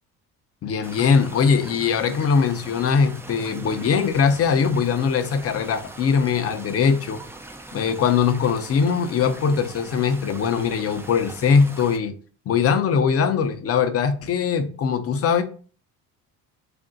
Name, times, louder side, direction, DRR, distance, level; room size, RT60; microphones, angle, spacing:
voice 1, 0.6-7.2 7.7-12.1 12.5-15.4, left 6 dB, 40° left, 9 dB, 0.6 m, -21 dB
sound 1, 0.8-12.0, right 2 dB, 5° right, 0.3 m, -41 dB
3.5 x 2.6 x 3.8 m, 0.41 s
cardioid pair, 105°, 37 cm